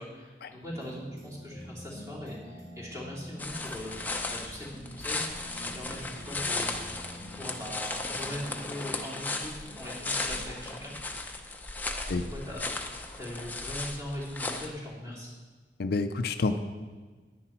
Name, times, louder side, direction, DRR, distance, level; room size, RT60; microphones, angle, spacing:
voice 1, 0.0-3.9 4.3-10.9 12.1-15.3, left 1 dB, 15° right, -5 dB, 2.8 m, -41 dB
sound 1, 0.6-11.7 12.0-12.1, equal, 35° right, 3.1 m, -48 dB
sound 2, 3.4-14.7, left 3 dB, 10° left, 0.7 m, -36 dB
voice 2, 15.8-16.6, left 3 dB, 60° left, 8 dB, 0.5 m, -28 dB
10.0 x 9.9 x 4.4 m, 1.4 s
head